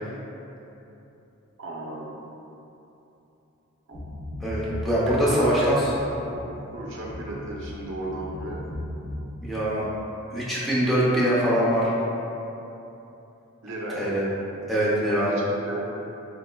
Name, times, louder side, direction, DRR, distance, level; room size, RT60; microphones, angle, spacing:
voice 1, 1.6-2.1 3.9-4.0 5.1-8.6 13.6-14.1 15.3-15.9, right 1 dB, 65° right, -4 dB, 0.6 m, -35 dB
sound 1, 3.9-9.2, left 1 dB, 65° left, 1.0 m, -37 dB
voice 2, 4.4-5.8 9.4-9.8 10.3-11.9 14.0-14.2 14.7-15.3, equal, ahead, -9 dB, 0.6 m, -23 dB
3.9 x 3.5 x 2.2 m, 2.9 s
head